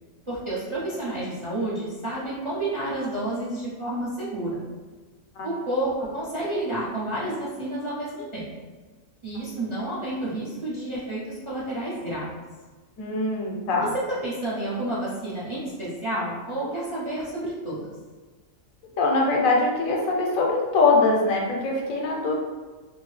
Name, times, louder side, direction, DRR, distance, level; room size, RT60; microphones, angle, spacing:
voice 1, 0.3-4.6 5.4-8.5 9.2-12.3 14.2-17.9, right 1 dB, 35° right, -8 dB, 0.5 m, -30 dB
voice 2, 13.0-13.9 19.0-22.3, left 3 dB, 75° left, -1 dB, 1.1 m, -22 dB
2.8 x 2.6 x 3.1 m, 1.3 s
omnidirectional pair, 1.4 m